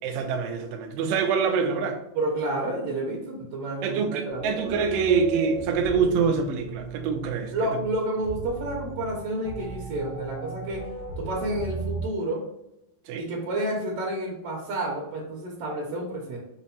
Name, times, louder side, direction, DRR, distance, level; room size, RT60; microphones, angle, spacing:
voice 1, 0.0-2.0 3.8-7.5 13.1-13.3, right 5 dB, 85° right, 1.4 m, -25 dB
voice 2, 2.1-4.5 7.5-10.8 11.2-12.5 13.2-16.4, right 1 dB, 65° right, 1.6 m, -30 dB
sound 1, 4.3-12.0, right 4 dB, 60° left, 0.7 m, -36 dB
6.0 x 2.1 x 4.1 m
omnidirectional pair, 3.5 m